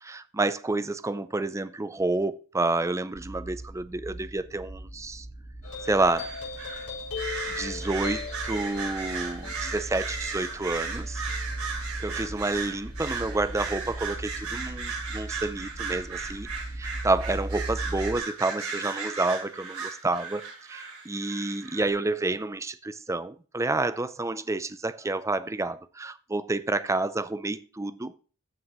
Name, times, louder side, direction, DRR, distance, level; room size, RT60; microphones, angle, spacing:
voice 1, 0.0-5.3 5.8-6.3 7.5-11.2 12.0-16.5 16.8-20.4 20.7-28.1, right 2 dB, 15° right, 0.5 m, -29 dB
sound 1, 3.1-18.2, right 1 dB, 30° left, 2.9 m, -39 dB
sound 2, 5.6-12.5, left 5 dB, 80° left, 5.2 m, -40 dB
sound 3, 5.8-6.9 7.2-21.9, right 4 dB, 80° right, 3.4 m, -36 dB
14.0 x 6.2 x 3.1 m
head